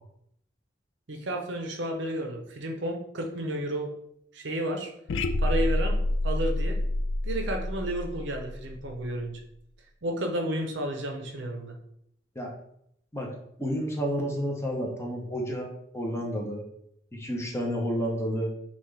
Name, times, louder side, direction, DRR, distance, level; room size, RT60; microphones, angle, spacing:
voice 1, 1.1-3.9 4.3-4.9 5.4-6.0 6.2-6.8 7.2-9.4 10.0-11.8, right 1 dB, 65° right, 3 dB, 0.7 m, -32 dB
sound 1, 5.1-9.2, left 1 dB, 70° left, 0.3 m, -28 dB
voice 2, 13.6-16.6 17.1-18.5, equal, 15° left, 0 dB, 0.8 m, -30 dB
5.7 x 2.4 x 3.3 m, 0.73 s
head